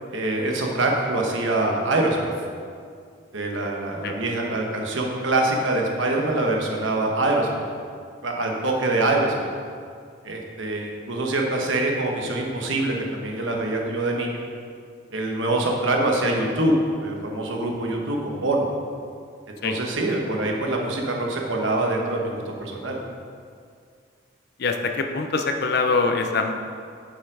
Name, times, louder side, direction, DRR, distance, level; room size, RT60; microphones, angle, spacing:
voice 1, 0.1-2.3 3.3-7.6 8.2-9.5 10.2-14.4 15.1-16.8 17.0-18.7 19.6-23.0, right 2 dB, 70° right, 0 dB, 1.1 m, -24 dB
voice 2, 24.6-26.5, left 4 dB, 50° left, 5 dB, 0.5 m, -23 dB
7.3 x 5.3 x 4.8 m, 2.2 s
head